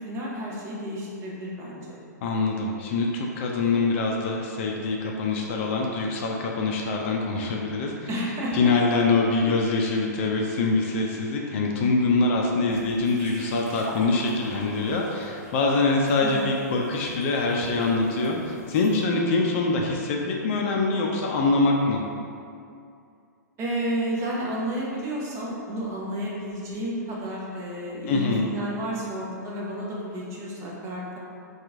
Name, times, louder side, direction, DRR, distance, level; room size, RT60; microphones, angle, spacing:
voice 1, 0.0-2.0 8.1-8.7 16.2-16.4 23.6-31.2, equal, 30° right, -4 dB, 0.7 m, -31 dB
voice 2, 2.2-8.1 8.5-22.0 28.1-28.5, left 3 dB, 40° left, 0 dB, 0.4 m, -24 dB
sound 1, 12.7-19.0, equal, 60° right, 1.0 m, -46 dB
2.9 x 2.3 x 3.5 m, 2.4 s
figure-of-eight pair, 115°, 10 cm